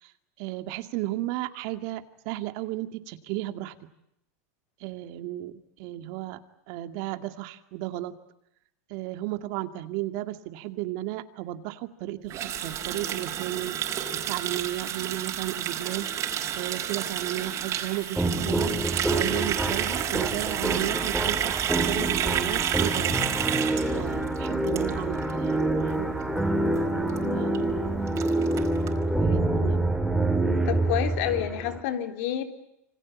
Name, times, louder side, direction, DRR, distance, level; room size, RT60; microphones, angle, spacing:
voice 1, 0.4-3.7 4.8-6.4 6.7-8.2 8.9-13.8 14.3-23.2 23.9-26.1 26.9-28.0 29.2-30.0, right 15 dB, 60° right, 9 dB, 2.3 m, -34 dB
Water tap faucet, 12.3-25.3 25.6-25.8 26.1-26.5 26.8-26.9 27.1-27.2 27.5-27.6 27.8-28.9, right 10 dB, 40° right, 4.8 m, -30 dB
sound 1, 18.2-31.8, right 2 dB, ahead, 4.1 m, -27 dB
voice 2, 27.2-27.5 30.7-32.4, left 11 dB, 70° left, 7 dB, 3.7 m, -29 dB
27.5 x 25.0 x 8.5 m, 0.81 s
supercardioid pair, 135°, 8 cm